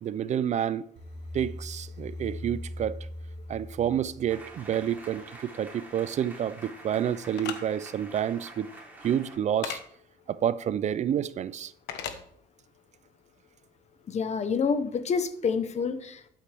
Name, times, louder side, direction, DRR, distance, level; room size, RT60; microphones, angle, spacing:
voice 1, 0.0-0.8 1.3-3.0 3.5-8.7 9.0-9.8 10.3-11.7, right 9 dB, 45° right, 0.4 m, -29 dB
sound 1, 1.0-5.0, left 1 dB, 90° right, 2.4 m, -41 dB
sound 2, 4.3-9.4, right 1 dB, 10° right, 3.5 m, -47 dB
sound 3, 7.4-7.6 9.6-9.8 11.9-12.2, left 9 dB, 85° left, 1.2 m, -34 dB
voice 2, 14.1-16.3, left 5 dB, 40° left, 1.0 m, -28 dB
13.0 x 7.8 x 3.5 m
cardioid pair, 110°, 17 cm